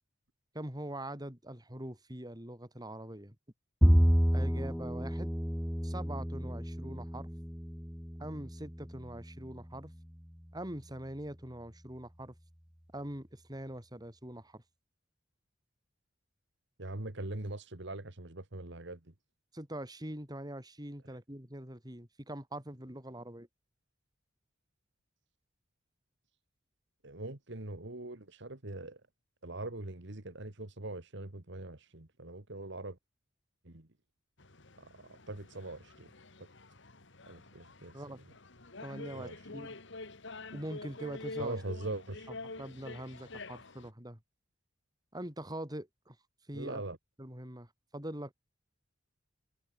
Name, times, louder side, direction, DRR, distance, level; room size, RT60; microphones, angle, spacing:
voice 1, 0.5-3.4 4.3-5.3 5.8-7.3 8.2-9.9 10.5-12.3 12.9-14.6 19.5-23.5 37.9-38.2 38.8-39.8 40.5-41.6 42.6-44.2 45.1-46.2 46.5-46.8 47.2-47.7 47.9-48.3, right 1 dB, 20° right, 5.5 m, -43 dB
Bowed string instrument, 3.8-10.1, equal, 5° right, 1.2 m, -30 dB
voice 2, 16.8-19.0 27.0-29.0 29.4-33.0 33.7-33.9 34.8-36.1 37.3-37.9 39.1-39.4 41.4-42.3 46.5-47.0, right 2 dB, 60° right, 2.1 m, -42 dB
sound 1, 34.4-43.9, left 3 dB, 65° left, 2.8 m, -47 dB
head